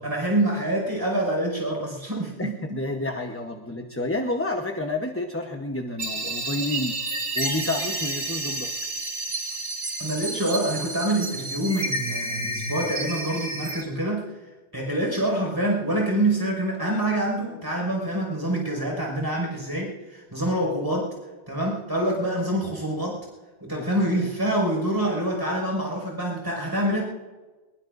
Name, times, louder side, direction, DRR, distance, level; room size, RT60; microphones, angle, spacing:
voice 1, 0.0-2.8 10.0-14.3 14.7-21.1 21.5-23.2 23.6-27.0, right 1 dB, 20° right, 0 dB, 5.6 m, -26 dB
voice 2, 2.4-7.0 7.3-8.7 23.8-23.9, left 2 dB, 10° left, 3 dB, 1.0 m, -29 dB
sound 1, 6.0-13.8, right 2 dB, 60° right, 2.0 m, -30 dB
24.5 x 22.0 x 2.6 m, 1.2 s
omnidirectional pair, 1.2 m